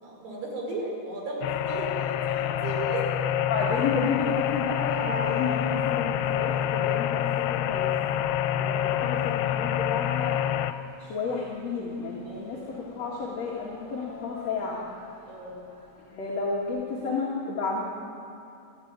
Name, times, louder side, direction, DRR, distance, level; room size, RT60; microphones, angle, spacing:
voice 1, 0.0-3.1 12.3-12.7 15.3-15.6, right 2 dB, 75° right, -2 dB, 7.2 m, -35 dB
sound 1, 1.4-10.7, left 11 dB, 85° left, 2.9 m, -27 dB
voice 2, 3.5-7.9 8.6-10.4 11.0-14.8 16.1-17.8, left 4 dB, 45° left, -3 dB, 2.9 m, -31 dB
sound 2, 4.9-16.8, right 1 dB, 5° left, 5.7 m, -45 dB
28.5 x 11.5 x 9.0 m, 2.8 s
omnidirectional pair, 4.7 m